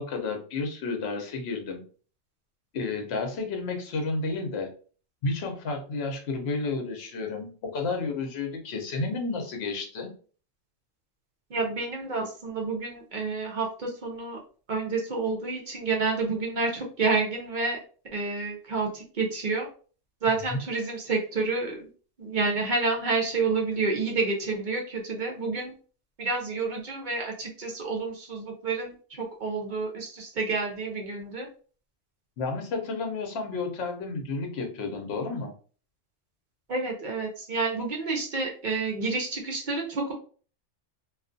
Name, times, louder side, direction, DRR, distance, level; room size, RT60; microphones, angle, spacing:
voice 1, 0.0-1.8 2.7-4.7 5.2-10.1 20.5-20.6 32.4-35.5, left 3 dB, 60° left, 3 dB, 0.9 m, -31 dB
voice 2, 11.5-14.4 14.7-17.8 18.1-19.7 20.2-21.8 22.2-25.7 26.2-31.5 36.7-40.1, right 3 dB, 50° right, 0 dB, 0.6 m, -29 dB
2.4 x 2.3 x 2.5 m, 0.40 s
omnidirectional pair, 1.3 m